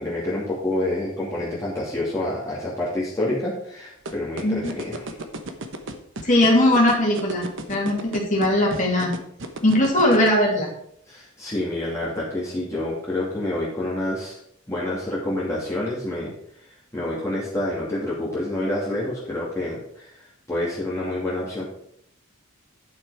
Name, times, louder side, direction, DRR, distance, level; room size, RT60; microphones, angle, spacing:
voice 1, 0.0-5.1 7.7-7.8 11.1-14.4 14.7-21.6, left 1 dB, 15° left, -7 dB, 2.5 m, -28 dB
sound 1, 4.0-10.3, right 2 dB, 65° right, 1.1 m, -32 dB
voice 2, 6.2-9.1 9.6-10.7, left 1 dB, 35° left, -3 dB, 2.7 m, -19 dB
11.0 x 6.2 x 4.8 m, 0.70 s
head